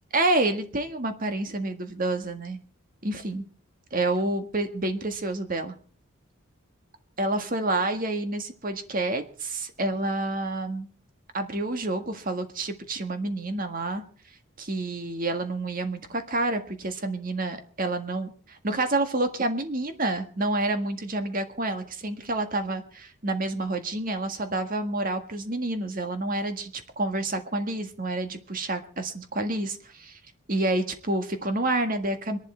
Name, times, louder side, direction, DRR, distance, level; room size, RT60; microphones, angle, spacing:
voice 1, 0.1-2.6 3.0-3.4 3.9-5.7 7.2-10.9 11.3-14.0 14.6-26.7 27.0-30.2 30.5-32.4, right 2 dB, 40° right, 7 dB, 1.7 m, -28 dB
24.0 x 11.5 x 4.4 m, 0.43 s
head